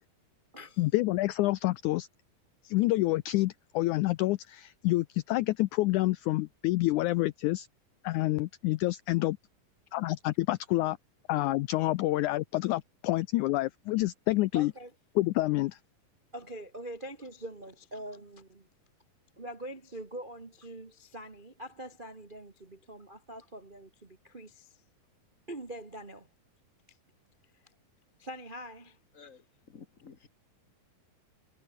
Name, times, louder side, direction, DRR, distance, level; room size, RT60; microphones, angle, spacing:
voice 1, 0.8-2.1 2.6-7.7 8.0-9.4 9.9-11.0 11.3-14.7 15.2-15.8, left 18 dB, 85° left, 1.7 m, -28 dB
voice 2, 14.5-14.9 16.3-18.7 19.4-24.8 25.5-26.3 26.9-27.0 27.5-27.6 28.2-29.3, right 1 dB, 40° right, 0.7 m, -44 dB
voice 3, 29.1-30.3, left 5 dB, 50° left, 0.9 m, -53 dB
omnidirectional pair, 4.1 m